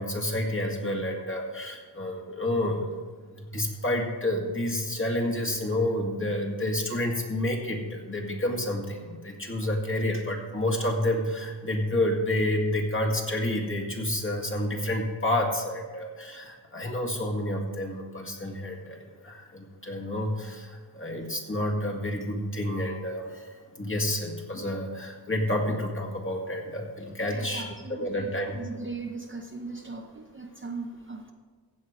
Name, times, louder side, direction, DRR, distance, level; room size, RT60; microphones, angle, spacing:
voice 1, 0.0-3.0 3.3-27.6 27.9-28.6, left 1 dB, 30° left, 0 dB, 2.0 m, -29 dB
voice 2, 27.3-31.3, right 3 dB, 30° right, 3 dB, 0.8 m, -39 dB
15.5 x 8.0 x 4.8 m, 1.5 s
wide cardioid pair, 110°, 43 cm